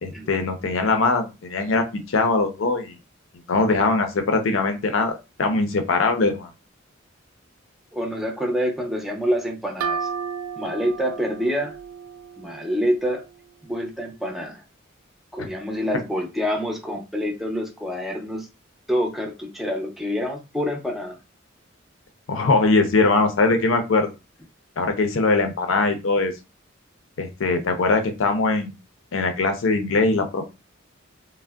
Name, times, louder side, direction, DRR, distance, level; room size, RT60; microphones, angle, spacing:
voice 1, 0.0-2.9 3.5-5.1 5.4-6.5 22.3-24.1 24.8-26.3 27.2-28.7 29.1-30.4, left 3 dB, 75° left, 0.5 m, -21 dB
voice 2, 7.9-10.1 10.6-11.8 12.4-13.2 13.6-14.6 15.3-18.5 18.9-21.2, equal, ahead, 0.5 m, -26 dB
sound 1, 9.8-13.4, right 6 dB, 85° right, 0.3 m, -33 dB
3.4 x 2.1 x 2.2 m
head